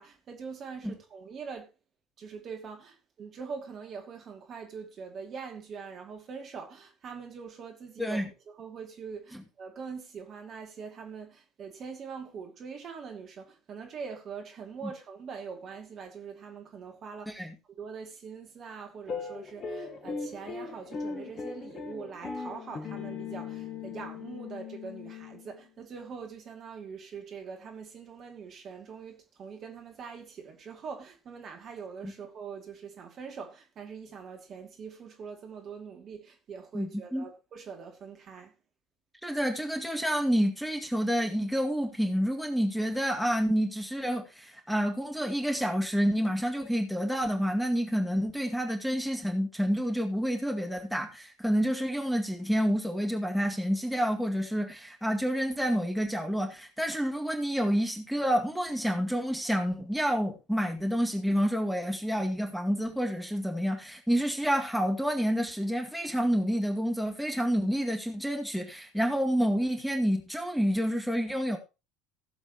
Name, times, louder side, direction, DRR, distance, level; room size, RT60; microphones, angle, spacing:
voice 1, 0.0-1.7 2.2-17.5 17.8-38.5, right 6 dB, 45° right, 2.4 m, -43 dB
voice 2, 8.0-8.3 17.3-17.5 32.0-32.1 36.7-37.2 39.2-71.6, equal, ahead, 2.1 m, -28 dB
sound 1, 19.1-25.6, left 5 dB, 40° left, 1.7 m, -39 dB
17.5 x 7.2 x 3.0 m
figure-of-eight pair, 65°, 0 cm